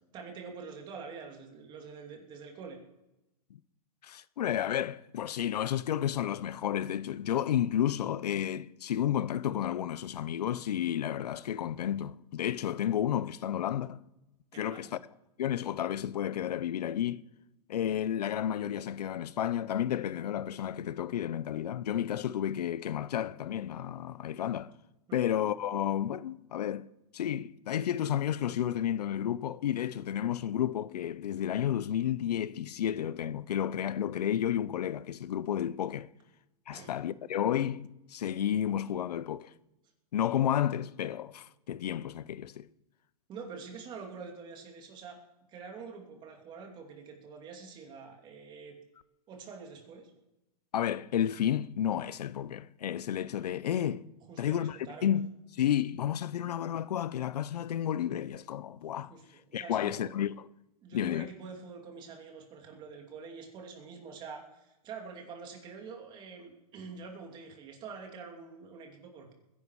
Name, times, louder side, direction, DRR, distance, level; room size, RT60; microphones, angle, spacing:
voice 1, 0.1-2.8 14.5-15.0 25.1-25.3 36.7-36.9 43.3-45.2 45.5-48.8 49.3-50.1 54.3-55.1 59.1-60.2 60.8-69.3, right 5 dB, 25° right, 2.7 m, -46 dB
voice 2, 4.0-14.0 14.6-15.0 15.4-17.2 17.7-24.7 25.1-26.9 27.1-36.1 36.7-39.5 40.1-42.7 50.7-54.0 54.4-59.1 59.5-60.3 60.9-61.3, left 10 dB, 90° left, 0.7 m, -31 dB
21.5 x 10.5 x 4.7 m
hypercardioid pair, 155°, 20 cm